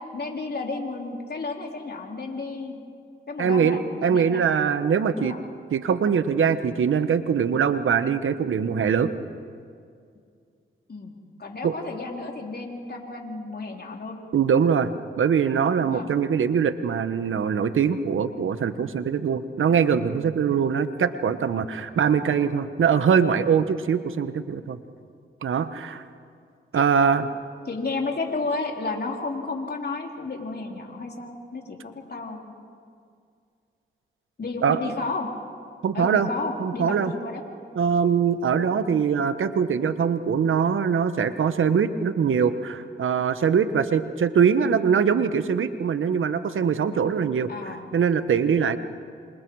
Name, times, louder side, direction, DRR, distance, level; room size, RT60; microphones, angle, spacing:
voice 1, 0.1-2.8 3.3-4.4 5.1-5.4 10.9-11.1 11.4-14.2 15.8-16.1 22.2-22.6 26.7-26.8 27.7-32.4 34.4-35.3 35.9-37.4 47.5-47.8, left 3 dB, 50° left, 1 dB, 3.9 m, -32 dB
voice 2, 3.4-5.3 5.7-9.1 11.6-11.7 14.3-14.9 15.2-24.8 25.4-26.0 26.7-27.3 34.6-34.8 35.8-36.3 36.6-37.1 37.7-47.5 47.9-48.8, right 7 dB, 75° right, 11 dB, 1.2 m, -22 dB
27.5 x 27.0 x 4.8 m, 2.3 s
supercardioid pair, 45°, 21 cm